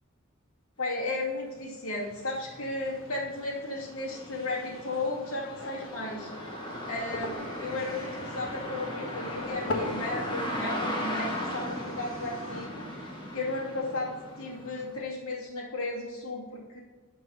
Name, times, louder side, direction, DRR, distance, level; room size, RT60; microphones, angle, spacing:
voice 1, 0.8-6.5 6.8-16.8, left 2 dB, 85° left, -3 dB, 2.5 m, -35 dB
sound 1, 1.6-1.7 2.1-15.0, equal, 20° left, 1.6 m, -37 dB
sound 2, 1.9-12.7, left 2 dB, 65° left, 1.5 m, -43 dB
12.5 x 4.7 x 5.7 m, 1.4 s
head